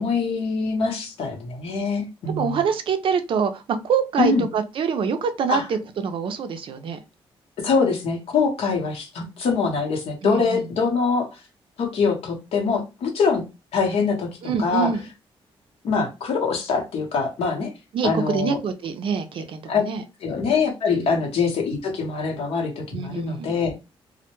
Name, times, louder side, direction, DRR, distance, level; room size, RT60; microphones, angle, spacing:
voice 1, 0.0-2.6 4.2-4.4 5.5-5.7 7.6-11.3 11.8-13.4 13.7-14.3 14.6-14.9 15.8-17.7 18.0-18.6 19.7-19.8 20.2-23.7, left 5 dB, 75° left, 0.8 m, -23 dB
voice 2, 2.4-7.0 10.2-10.6 14.4-15.0 17.9-20.0 20.9-21.1 22.9-23.5, right 6 dB, 60° right, 0.4 m, -25 dB
2.1 x 2.0 x 2.9 m
cardioid pair, 120°, 10 cm